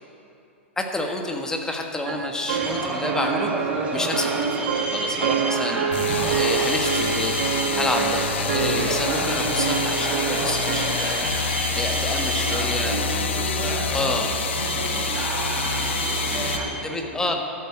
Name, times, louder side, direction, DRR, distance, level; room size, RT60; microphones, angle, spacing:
voice 1, 0.8-3.5 3.9-5.8 6.4-7.3 7.8-11.1 11.7-12.9 13.9-14.3 16.8-17.3, left 2 dB, 10° left, 3 dB, 1.4 m, -29 dB
sound 1, 2.0-11.5, right 8 dB, 60° right, 0.8 m, -28 dB
sound 2, 2.5-16.7, right 2 dB, 15° right, 2.2 m, -29 dB
sound 3, 5.9-16.6, left 5 dB, 65° left, 1.2 m, -27 dB
voice 2, 12.1-13.0 13.4-13.9 14.5-17.3, right 2 dB, 75° right, 3 dB, 1.6 m, -38 dB
13.0 x 8.3 x 8.5 m, 2.7 s
figure-of-eight pair, 100°, 7 cm